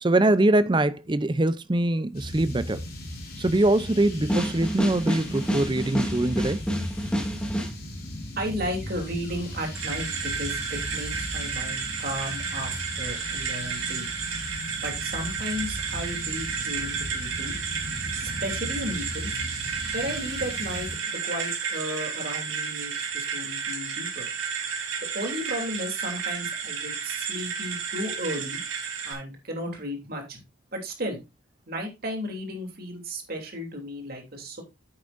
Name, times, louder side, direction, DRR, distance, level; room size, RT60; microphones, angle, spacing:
voice 1, 0.0-2.8 3.4-6.6, right 2 dB, 25° right, 0.5 m, -23 dB
sound 1, 2.1-21.0, left 1 dB, 50° left, 3.3 m, -37 dB
sound 2, 4.3-7.7, equal, 5° left, 2.2 m, -28 dB
voice 2, 8.4-14.1 14.8-17.6 18.0-19.3 19.9-24.3 25.1-28.6 29.0-30.4 30.7-31.2 31.7-34.6, equal, 50° right, 2.9 m, -34 dB
sound 3, 9.7-29.1, right 6 dB, 80° right, 3.2 m, -32 dB
9.9 x 8.7 x 2.5 m
head